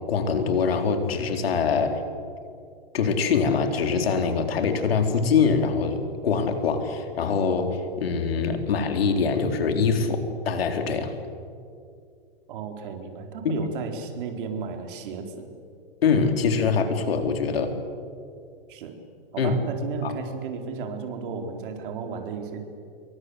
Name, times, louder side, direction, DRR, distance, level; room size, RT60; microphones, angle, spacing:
voice 1, 0.1-2.0 2.9-11.1 13.4-13.5 16.0-17.8 19.4-19.6 20.0-20.1, left 5 dB, 75° left, 6 dB, 4.0 m, -24 dB
voice 2, 12.5-15.5 18.7-19.0 19.3-22.6, right 5 dB, 55° right, 4 dB, 4.4 m, -34 dB
27.5 x 23.5 x 8.0 m, 2.3 s
hypercardioid pair, 145°, 30 cm